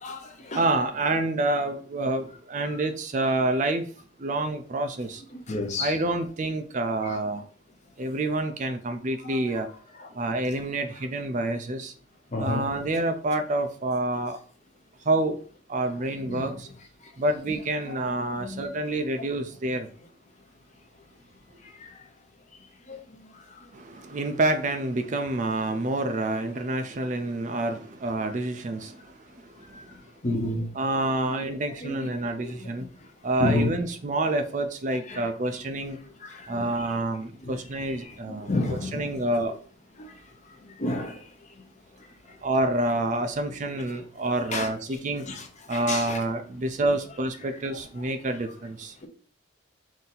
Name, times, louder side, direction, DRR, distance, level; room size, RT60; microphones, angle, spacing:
voice 1, 0.0-0.6 2.7-2.8 5.5-5.9 7.0-7.2 12.3-12.7 16.3-16.5 18.4-18.6 22.9-23.0 30.2-30.7 31.8-32.1 32.4-32.5 33.4-33.7 35.1-35.3 36.2-36.7 37.4-37.6 38.3-39.1 40.0-40.1 40.8-41.2 44.5-44.7 45.3-45.5 45.7-46.2, left 2 dB, 35° left, 0.6 m, -30 dB
voice 2, 0.5-3.9 4.2-5.2 5.8-7.4 8.0-9.7 10.2-11.9 12.4-14.4 15.1-15.4 15.7-16.7 17.2-19.9 23.7-28.9 30.7-32.9 33.2-36.0 36.5-39.6 42.4-45.2 45.7-48.9, right 2 dB, 35° right, 0.4 m, -28 dB
3.9 x 2.7 x 3.9 m
head